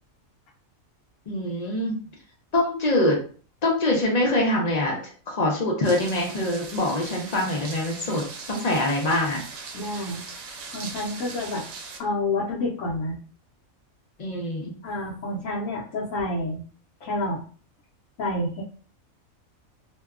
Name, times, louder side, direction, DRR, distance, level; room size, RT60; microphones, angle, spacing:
voice 1, 1.3-2.0 2.5-3.2 3.6-5.0 5.3-8.2 8.5-9.4 14.2-14.7, left 1 dB, 45° left, -1 dB, 0.5 m, -24 dB
sound 1, 5.8-12.0, right 4 dB, 85° right, 1.0 m, -40 dB
voice 2, 9.7-10.2 10.7-11.6 12.0-13.2 14.8-16.6 17.0-17.4 18.2-18.6, left 2 dB, 70° left, -6 dB, 1.0 m, -28 dB
2.7 x 2.1 x 2.3 m, 0.41 s
omnidirectional pair, 1.4 m